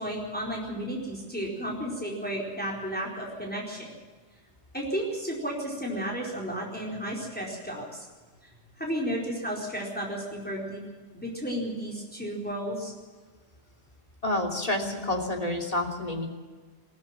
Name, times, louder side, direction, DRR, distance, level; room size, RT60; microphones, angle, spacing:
voice 1, 0.0-3.9 4.7-8.1 8.8-10.8 11.1-12.9, equal, 10° left, -3 dB, 4.4 m, -33 dB
voice 2, 14.2-16.3, left 1 dB, 35° left, 2 dB, 3.1 m, -29 dB
22.0 x 15.5 x 7.4 m, 1.4 s
omnidirectional pair, 1.1 m